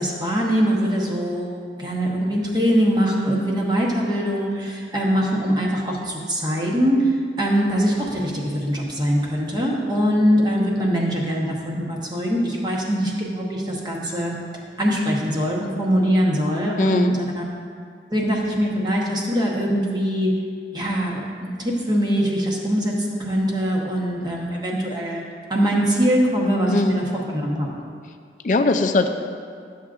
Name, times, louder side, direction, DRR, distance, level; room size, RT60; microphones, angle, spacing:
voice 1, 0.0-14.4 14.8-17.4 18.1-20.3 20.7-25.2 25.5-27.7, equal, 25° right, -3 dB, 1.1 m, -22 dB
voice 2, 16.8-17.1 26.7-27.0 28.4-29.1, left 3 dB, 45° left, 7 dB, 0.4 m, -19 dB
12.0 x 7.3 x 2.5 m, 2.1 s
head